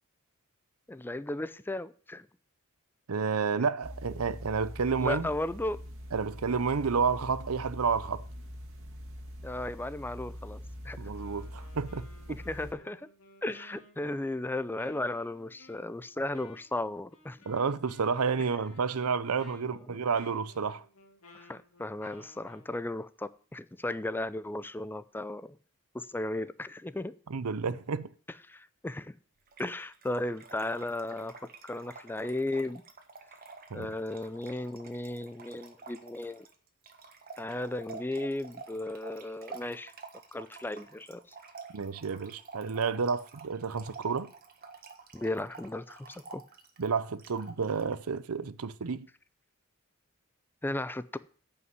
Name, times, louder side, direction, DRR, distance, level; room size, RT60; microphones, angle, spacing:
voice 1, 0.9-2.3 5.0-5.8 9.4-11.0 12.3-13.1 13.4-17.4 19.6-20.0 21.3-25.6 25.9-27.1 28.5-29.1 29.6-31.4 31.6-32.8 33.7-36.5 37.4-39.9 40.3-41.2 45.1-46.4 50.6-51.2, left 1 dB, 10° left, 0.4 m, -35 dB
voice 2, 3.1-5.3 6.1-8.2 11.0-12.4 17.5-20.8 27.3-28.1 33.7-33.9 41.7-44.3 46.8-49.1, right 5 dB, 85° right, 0.6 m, -30 dB
sound 1, 3.8-12.7, equal, 65° right, 2.1 m, -43 dB
Wind instrument woodwind instrument, 11.0-22.7, left 2 dB, 80° left, 2.1 m, -57 dB
Trickle dribble / Fill (with liquid), 29.5-47.9, right 4 dB, 45° right, 1.4 m, -49 dB
9.6 x 5.7 x 8.1 m
head